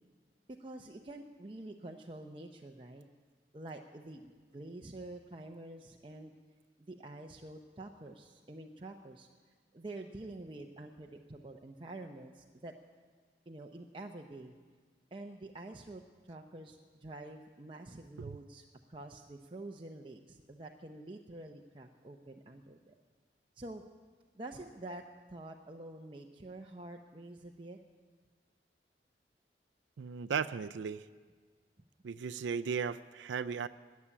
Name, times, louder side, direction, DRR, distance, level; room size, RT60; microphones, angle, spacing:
voice 1, 0.5-3.1 3.5-6.3 6.8-9.3 9.7-12.7 13.5-14.5 15.1-22.9 23.6-23.8 24.3-27.8, right 2 dB, 30° right, 2 dB, 0.6 m, -47 dB
voice 2, 30.0-31.1 32.0-33.7, right 6 dB, 90° right, 12 dB, 0.4 m, -36 dB
14.5 x 8.4 x 10.0 m, 1.5 s
head